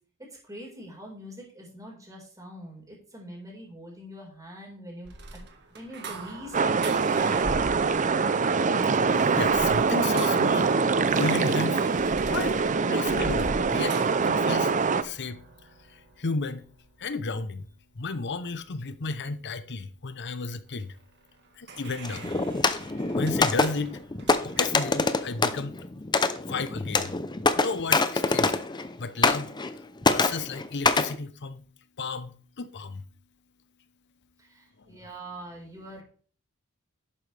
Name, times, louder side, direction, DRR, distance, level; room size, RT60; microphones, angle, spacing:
voice 1, 0.4-5.4 5.7-7.6 34.4-36.0, equal, 15° right, 4.6 m, -44 dB
sound 1, 5.0-17.4 21.1-24.8, right 3 dB, 50° right, 1.6 m, -41 dB
sound 2, 6.5-15.0, right 4 dB, 35° right, 0.6 m, -24 dB
voice 2, 8.8-10.7 11.1-11.9 12.3-14.7 15.0-16.7 17.0-17.7 17.9-21.0 21.6-22.3 23.2-24.0 24.4-25.8 26.5-27.1 27.6-29.5 30.1-31.6 32.0-33.0 34.8-35.0, left 3 dB, 55° left, 0.8 m, -33 dB
sound 3, 22.0-28.9 29.2-29.8 30.0-31.1, left 3 dB, 20° left, 0.6 m, -25 dB
11.5 x 9.0 x 3.4 m
head